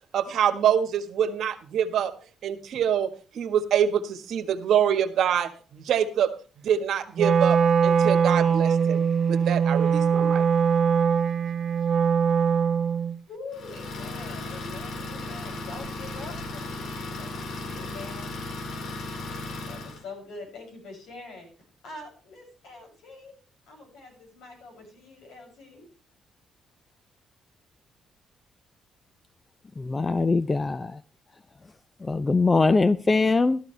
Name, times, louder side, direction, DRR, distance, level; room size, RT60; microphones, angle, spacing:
voice 1, 0.1-2.1 2.4-3.1 3.3-6.3 6.6-9.0 9.3-10.4, right 9 dB, 70° right, 8 dB, 1.5 m, -25 dB
Wind instrument woodwind instrument, 7.2-13.2, right 6 dB, 50° right, 1.3 m, -22 dB
voice 2, 13.3-18.3 19.7-21.5 21.8-23.3 23.7-25.9, left 3 dB, 85° left, 1 dB, 6.9 m, -44 dB
Idling, 13.5-20.0, left 2 dB, 70° left, 2.2 m, -36 dB
voice 3, 29.8-30.9 32.0-33.6, left 3 dB, 25° left, 15 dB, 0.5 m, -22 dB
13.5 x 13.0 x 3.3 m, 0.38 s
cardioid pair, 90°, 0 cm